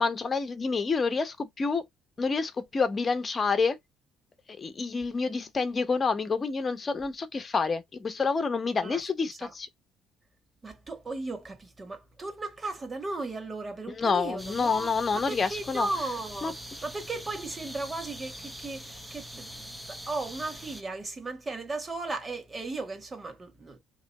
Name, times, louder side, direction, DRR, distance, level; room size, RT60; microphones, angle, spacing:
voice 1, 0.0-1.8 2.2-3.8 4.6-9.7 13.9-15.9 16.4-16.5, left 4 dB, 35° left, 1.1 m, -28 dB
voice 2, 10.6-16.5 16.8-23.8, right 3 dB, 30° right, 1.6 m, -36 dB
sound 1, 14.4-20.8, equal, 5° right, 0.9 m, -43 dB
3.3 x 3.1 x 4.2 m
supercardioid pair, 75°, 0 cm